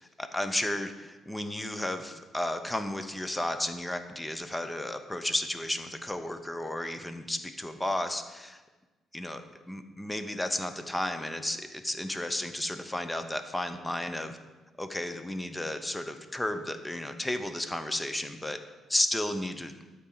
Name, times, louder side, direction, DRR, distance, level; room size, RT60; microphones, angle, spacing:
voice 1, 0.0-8.6 9.1-9.4 9.7-14.4 14.8-18.6 18.9-19.7, left 1 dB, 10° left, 8 dB, 0.7 m, -33 dB
12.5 x 4.3 x 3.9 m, 1.2 s
cardioid pair, 90°, 0 cm